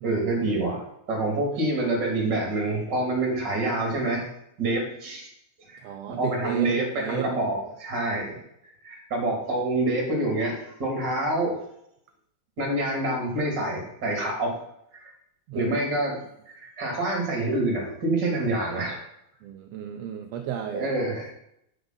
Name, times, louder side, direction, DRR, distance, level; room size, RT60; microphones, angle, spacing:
voice 1, 0.0-4.3 4.6-5.3 5.6-8.4 8.8-11.6 12.6-14.6 14.9-15.1 15.5-19.0 20.7-21.3, right 2 dB, 35° right, 0 dB, 3.1 m, -27 dB
voice 2, 5.8-7.3 15.5-15.8 19.4-20.9, right 9 dB, 75° right, 5 dB, 1.7 m, -34 dB
9.0 x 9.0 x 4.0 m, 0.77 s
omnidirectional pair, 3.4 m